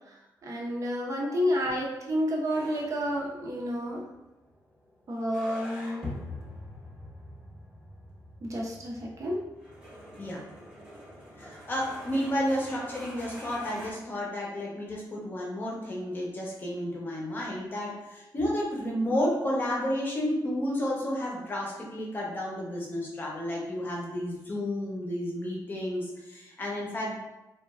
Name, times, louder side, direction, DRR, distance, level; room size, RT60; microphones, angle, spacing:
voice 1, 0.4-4.0 5.1-6.1 8.4-9.4, equal, 45° right, -2 dB, 0.5 m, -30 dB
sound 1, 2.5-13.9, left 1 dB, 10° right, 0.7 m, -45 dB
voice 2, 11.4-27.2, equal, 25° left, -3 dB, 0.6 m, -31 dB
3.0 x 2.3 x 2.3 m, 0.98 s
wide cardioid pair, 170°, 7 cm